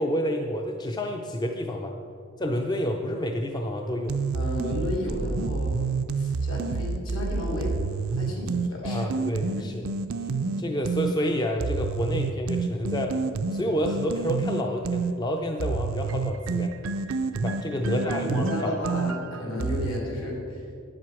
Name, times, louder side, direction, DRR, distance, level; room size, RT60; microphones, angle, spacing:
voice 1, 0.0-1.9 2.4-4.2 8.8-9.9 10.6-13.2 13.5-16.7 17.3-18.7, equal, 20° left, 3 dB, 0.5 m, -29 dB
sound 1, 4.1-11.1 11.6-15.1 15.6-20.0, right 4 dB, 75° right, 0.5 m, -28 dB
voice 2, 4.3-5.8 6.1-7.7 8.1-9.2 9.6-9.7 17.8-20.6, left 1 dB, 70° left, -2 dB, 3.0 m, -32 dB
9.4 x 7.7 x 6.2 m, 2.3 s
head